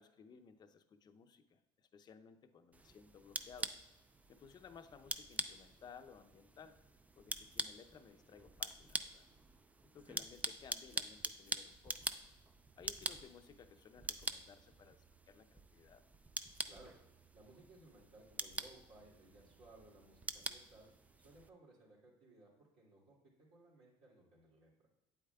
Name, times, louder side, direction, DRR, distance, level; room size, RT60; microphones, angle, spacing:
voice 1, 0.0-3.7 4.3-6.8 7.2-9.3 9.8-12.0 12.8-16.0, left 6 dB, 35° left, 9 dB, 0.6 m, -58 dB
sound 1, 2.7-21.5, right 2 dB, 10° right, 0.4 m, -46 dB
voice 2, 17.3-20.9 21.2-24.7, right 2 dB, 60° right, -6 dB, 2.7 m, -61 dB
8.6 x 8.3 x 2.3 m, 1.0 s
cardioid pair, 110°, 12 cm